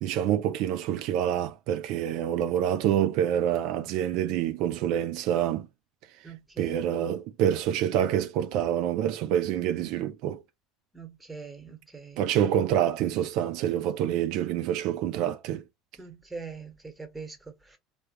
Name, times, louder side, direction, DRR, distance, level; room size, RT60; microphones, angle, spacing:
voice 1, 0.0-5.7 6.6-10.4 12.2-15.6, right 10 dB, 65° right, 0.3 m, -27 dB
voice 2, 6.2-6.8 10.9-12.2 16.0-17.8, right 5 dB, 15° right, 1.3 m, -42 dB
3.4 x 2.2 x 2.8 m
hypercardioid pair, 75°, 0 cm